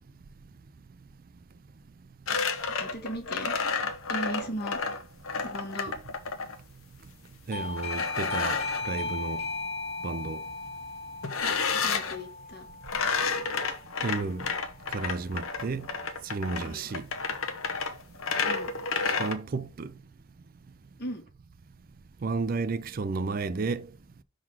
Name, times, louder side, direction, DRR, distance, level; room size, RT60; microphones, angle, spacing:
sound 1, 2.3-6.6 7.8-8.9 11.2-12.2 12.8-19.3, left 5 dB, 75° left, 1.0 m, -30 dB
voice 1, 2.8-3.5 4.1-4.8 5.4-5.9 11.4-12.7 16.6-16.9 18.4-18.7 21.0-21.2, equal, 50° left, 1.4 m, -37 dB
Doorbell, 7.5-14.0, left 3 dB, 30° left, 0.6 m, -37 dB
voice 2, 7.5-8.6 8.9-9.4 10.0-10.4 14.0-14.4 14.9-15.9 16.2-17.0 19.2-19.9 22.2-23.9, right 4 dB, 45° right, 0.4 m, -32 dB
6.0 x 3.9 x 6.2 m
head